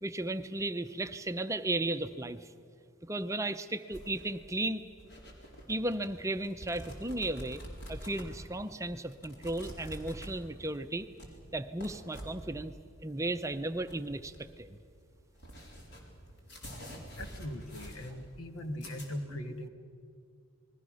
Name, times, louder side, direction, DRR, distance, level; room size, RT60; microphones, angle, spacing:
voice 1, 0.0-2.5 3.0-4.8 5.7-7.6 7.9-11.1 11.5-12.7 13.0-14.8, right 2 dB, 15° right, 9 dB, 0.5 m, -35 dB
sound 1, 3.9-19.1, equal, 50° left, 4.3 m, -48 dB
voice 2, 16.9-19.7, left 1 dB, 80° left, 7 dB, 1.7 m, -40 dB
28.5 x 21.0 x 6.3 m, 2.3 s
head